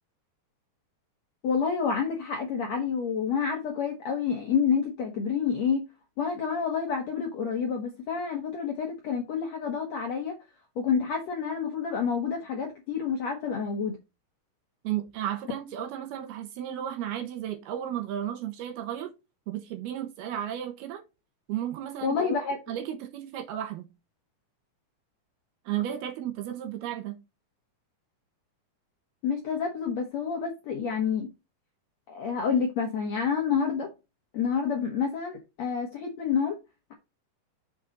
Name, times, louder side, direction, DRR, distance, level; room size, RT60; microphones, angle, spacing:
voice 1, 1.4-5.8 6.2-10.3 10.8-14.0 22.0-22.6 29.2-31.3 32.1-33.9 34.3-36.5, left 6 dB, 70° left, 1.6 m, -28 dB
voice 2, 14.8-19.1 19.5-21.0 21.5-22.2 22.7-23.9 25.7-27.2, right 11 dB, 75° right, 3.0 m, -33 dB
7.0 x 5.0 x 4.0 m
omnidirectional pair, 4.8 m